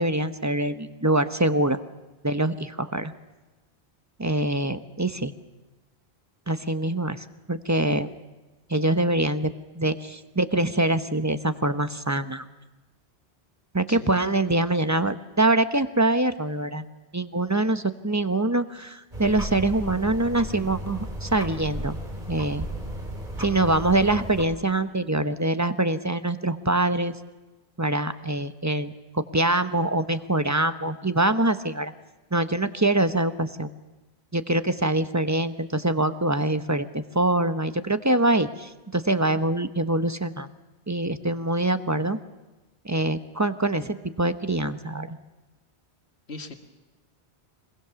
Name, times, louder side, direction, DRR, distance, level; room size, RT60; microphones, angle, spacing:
voice 1, 0.0-1.8 2.2-3.1 4.2-5.3 6.5-8.1 8.7-12.4 13.7-16.8 17.1-22.0 22.3-22.7 23.4-27.2 27.8-31.9 32.3-33.7 34.3-40.5 40.9-42.2 42.8-45.2, right 2 dB, 20° right, 10 dB, 0.8 m, -24 dB
voice 2, 13.9-14.1 41.2-41.4 46.3-46.5, left 3 dB, 80° left, 5 dB, 2.1 m, -40 dB
sound 1, 19.1-24.4, right 1 dB, 45° right, 3.5 m, -34 dB
23.5 x 21.5 x 7.0 m, 1.1 s
omnidirectional pair, 1.1 m